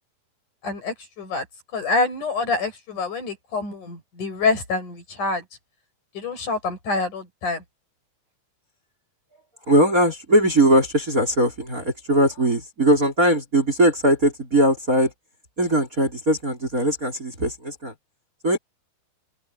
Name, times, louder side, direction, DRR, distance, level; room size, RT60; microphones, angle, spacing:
voice 1, 0.6-1.4 1.7-5.4 6.1-7.6, left 3 dB, 55° left, 8.6 m, -26 dB
voice 2, 9.7-15.1 15.6-17.9 18.4-18.6, right 1 dB, 20° right, 4.8 m, -20 dB
open air
omnidirectional pair, 4.4 m